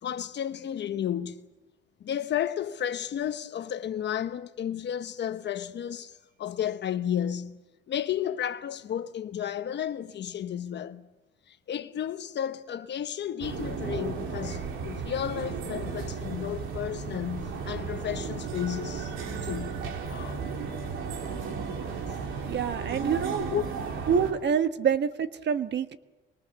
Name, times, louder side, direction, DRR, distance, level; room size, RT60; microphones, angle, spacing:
voice 1, 0.0-1.4 2.0-7.6 7.9-11.1 11.5-19.1 19.4-19.8 20.1-20.4 23.5-23.7, left 10 dB, 60° left, 1.1 m, -32 dB
sound 1, 13.4-24.3, right 5 dB, 85° right, 2.8 m, -34 dB
voice 2, 22.4-23.5 24.1-26.0, right 7 dB, 60° right, 1.3 m, -26 dB
25.0 x 22.5 x 7.1 m
cardioid pair, 90°, 20 cm